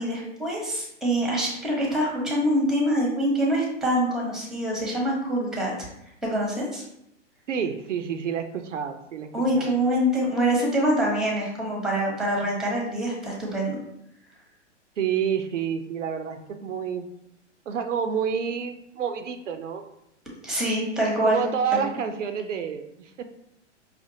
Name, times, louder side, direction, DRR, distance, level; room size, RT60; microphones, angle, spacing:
voice 1, 0.0-5.7 6.2-6.8 9.3-13.8 20.4-21.4 21.7-21.8, right 1 dB, ahead, -2 dB, 0.9 m, -25 dB
voice 2, 7.5-9.3 9.5-9.7 15.0-17.1 17.7-19.8 21.2-23.2, right 7 dB, 85° right, 7 dB, 0.5 m, -29 dB
5.0 x 2.4 x 2.7 m, 0.80 s
hypercardioid pair, 115°, 36 cm